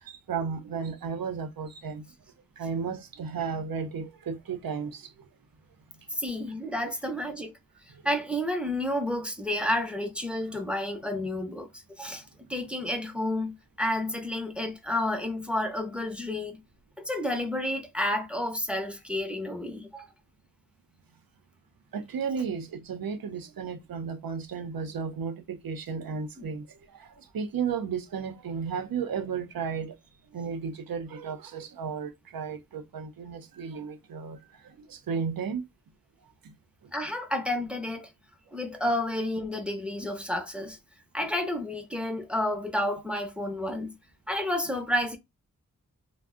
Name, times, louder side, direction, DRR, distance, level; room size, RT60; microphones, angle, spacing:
voice 1, 0.0-2.1 2.6-5.1 21.9-30.0 30.3-35.6 36.4-36.5 36.8-36.9, right 6 dB, 85° right, 0.5 m, -34 dB
voice 2, 6.1-7.5 8.0-16.6 17.0-20.1 26.4-26.5 36.9-38.1 38.5-40.8 41.1-43.9 44.3-45.2, left 1 dB, 5° right, 0.5 m, -30 dB
2.4 x 2.0 x 3.5 m
wide cardioid pair, 85°, 34 cm